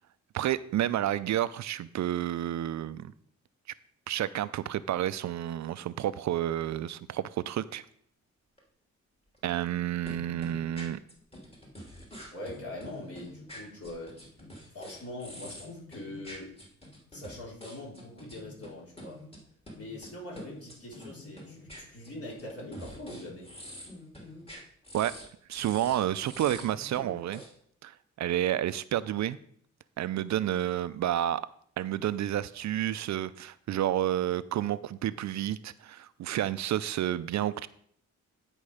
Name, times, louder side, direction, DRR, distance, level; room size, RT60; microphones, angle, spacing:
voice 1, 0.3-3.1 4.1-7.8 9.4-11.0 24.9-25.1 25.5-27.4 27.8-29.4 30.0-31.4 31.8-37.7, right 12 dB, 70° right, 15 dB, 0.5 m, -30 dB
sound 1, 8.6-8.7 9.3-9.8 10.1-18.7 19.0-19.4 19.7-20.1 20.4-25.3 25.5-27.5, equal, 20° left, 2.6 m, -46 dB
voice 2, 12.3-14.2 14.7-16.5 17.1-19.2 19.7-23.5, left 1 dB, 50° left, -4 dB, 4.0 m, -42 dB
10.5 x 5.4 x 4.9 m, 0.63 s
cardioid pair, 100°, 30 cm